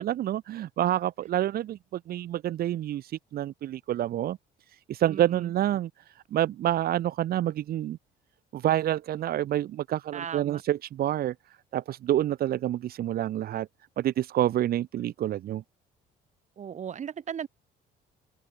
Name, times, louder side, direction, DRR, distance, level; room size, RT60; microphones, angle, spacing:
voice 1, 0.0-4.4 4.7-8.0 8.5-13.7 14.0-15.6, right 12 dB, 65° right, 3.0 m, -28 dB
voice 2, 5.1-5.5 10.1-10.6 16.6-17.5, right 8 dB, 45° right, 5.5 m, -37 dB
cardioid pair, 110°, 17 cm